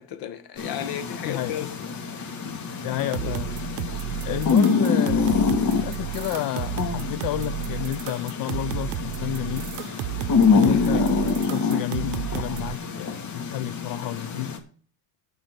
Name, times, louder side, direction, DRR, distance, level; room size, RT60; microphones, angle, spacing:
voice 1, 0.0-2.2 3.2-3.4 10.5-11.0, left 10 dB, 90° left, 1.6 m, -35 dB
sound 1, 0.6-14.6, left 5 dB, 55° left, 2.5 m, -26 dB
voice 2, 1.2-1.7 2.8-3.5 4.2-9.7 10.5-14.6, left 13 dB, 70° left, 0.7 m, -30 dB
sound 2, 3.0-12.7, right 17 dB, 90° right, 0.6 m, -33 dB
12.0 x 4.7 x 7.6 m
cardioid pair, 120°, 35 cm